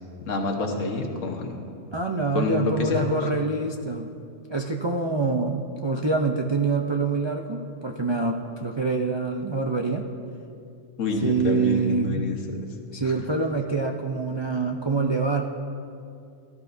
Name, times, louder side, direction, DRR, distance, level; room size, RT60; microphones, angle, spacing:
voice 1, 0.2-1.6 2.3-3.1 11.0-12.7 13.0-13.1, left 3 dB, 75° left, 3 dB, 1.5 m, -27 dB
voice 2, 1.9-4.1 4.5-10.1 11.2-12.3 12.9-15.4, right 4 dB, 45° right, 1 dB, 0.3 m, -26 dB
18.0 x 12.5 x 2.6 m, 2.5 s
omnidirectional pair, 1.3 m